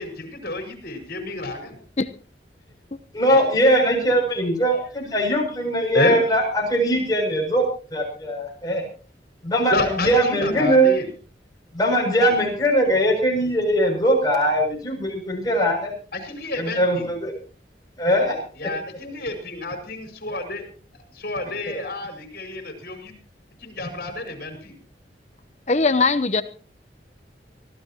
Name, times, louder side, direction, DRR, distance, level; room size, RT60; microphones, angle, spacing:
voice 1, 0.0-1.8 3.3-3.5 5.5-5.6 5.9-6.4 9.7-11.1 12.2-12.5 16.1-17.1 18.6-20.7 21.1-23.1 23.6-24.8, left 1 dB, 55° left, 4 dB, 5.4 m, -29 dB
voice 2, 3.1-7.6 7.9-8.8 9.4-9.8 10.0-10.9 11.7-15.9 16.6-17.3 18.0-18.4 21.7-21.8, right 1 dB, 20° left, -1 dB, 7.3 m, -20 dB
voice 3, 25.7-26.4, left 3 dB, 40° left, 12 dB, 1.0 m, -20 dB
25.0 x 16.0 x 3.0 m, 0.38 s
head